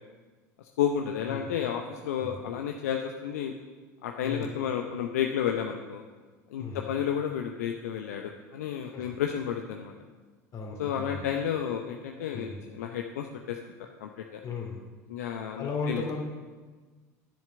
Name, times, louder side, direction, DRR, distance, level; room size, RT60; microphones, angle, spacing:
voice 1, 0.6-3.5 4.0-6.0 6.5-9.9 10.8-13.6 14.0-14.4 15.1-16.0, left 8 dB, 75° left, 3 dB, 0.7 m, -31 dB
voice 2, 4.2-4.5 6.5-6.8 8.9-9.2 10.5-11.2 12.3-12.6 14.4-14.8 15.2-16.2, left 4 dB, 45° left, 2 dB, 2.7 m, -36 dB
10.5 x 7.5 x 6.9 m, 1.4 s
hypercardioid pair, 75°, 9 cm